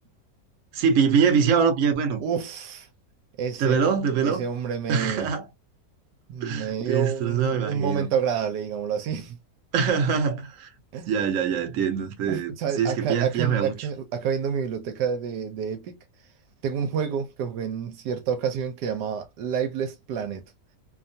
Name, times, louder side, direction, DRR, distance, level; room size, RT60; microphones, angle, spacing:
voice 1, 0.7-2.2 3.6-4.4 4.9-5.4 6.4-8.1 9.7-10.7 11.1-13.8, right 6 dB, 60° right, 1.0 m, -23 dB
voice 2, 2.2-2.9 3.4-3.8 4.2-5.3 6.3-9.4 10.9-11.1 12.3-16.0 16.6-20.4, right 7 dB, 80° right, 1.2 m, -29 dB
2.8 x 2.3 x 2.6 m
omnidirectional pair, 1.8 m